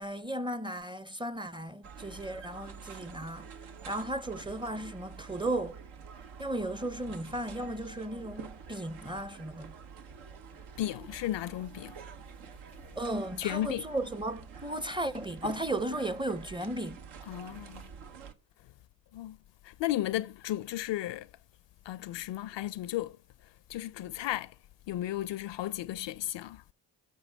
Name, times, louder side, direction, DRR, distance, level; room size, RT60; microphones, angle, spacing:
voice 1, 0.0-3.5 3.9-5.8 6.4-9.7 13.0-17.0, right 1 dB, 10° right, 0.5 m, -35 dB
sound 1, 1.8-18.3, right 6 dB, 80° right, 1.0 m, -48 dB
voice 2, 10.8-12.0 13.4-13.8 17.3-17.9 19.1-19.4 19.6-21.3 21.9-23.2 23.7-24.5 24.9-26.6, left 14 dB, 60° left, 0.5 m, -34 dB
13.0 x 5.9 x 3.4 m
supercardioid pair, 50°, 49 cm